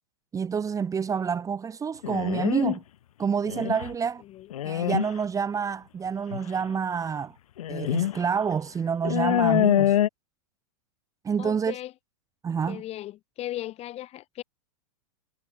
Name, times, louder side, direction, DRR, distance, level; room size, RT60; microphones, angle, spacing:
voice 1, 0.3-2.8 3.2-4.2 4.6-7.4 7.7-10.0 11.2-11.8 12.4-12.8, right 6 dB, 15° right, 2.3 m, -28 dB
sound 1, 2.0-2.8 3.5-3.9 4.5-5.1 6.3-6.4 7.6-8.2 8.5-8.6 9.0-10.1, left 12 dB, 65° left, 2.8 m, -24 dB
voice 2, 4.2-4.5 11.4-11.9 12.7-14.4, left 14 dB, 35° left, 6.9 m, -37 dB
hypercardioid pair, 110°, 19 cm